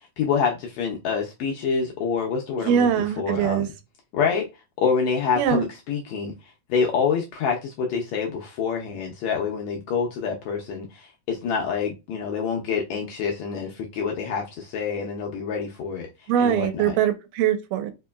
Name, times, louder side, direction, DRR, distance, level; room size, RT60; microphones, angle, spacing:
voice 1, 0.2-3.6 4.1-4.5 4.8-6.3 6.7-16.1 16.4-16.9, left 6 dB, 75° left, 1.6 m, -26 dB
voice 2, 2.6-3.7 5.4-5.6 16.3-17.9, right 9 dB, 85° right, 2.3 m, -22 dB
5.0 x 3.0 x 2.2 m
omnidirectional pair, 3.8 m